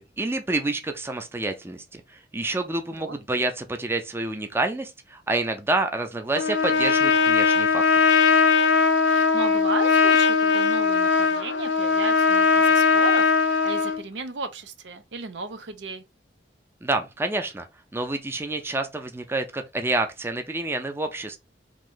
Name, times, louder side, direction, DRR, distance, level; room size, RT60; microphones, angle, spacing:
voice 1, 0.0-7.8 16.8-17.7 17.9-21.4, right 2 dB, 15° right, 0.4 m, -28 dB
Trumpet, 6.4-14.0, left 5 dB, 85° left, 0.5 m, -20 dB
voice 2, 9.1-16.0, right 3 dB, 80° right, 0.6 m, -35 dB
3.1 x 2.6 x 3.7 m
head